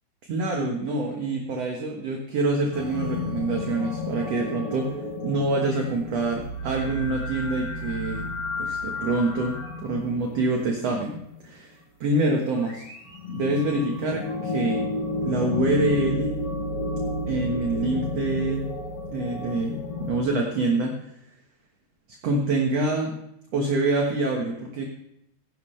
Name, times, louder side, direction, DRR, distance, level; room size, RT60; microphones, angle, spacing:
voice 1, 0.3-5.0 5.2-8.3 8.6-12.9 13.3-14.8 15.2-16.3 17.3-18.7 19.1-21.0 22.1-23.2 23.5-24.8, right 2 dB, 60° right, 1 dB, 1.8 m, -26 dB
sound 1, 2.7-11.4 12.4-20.2, left 2 dB, 70° left, 7.3 m, -31 dB
16.0 x 11.0 x 3.3 m, 0.80 s
omnidirectional pair, 4.6 m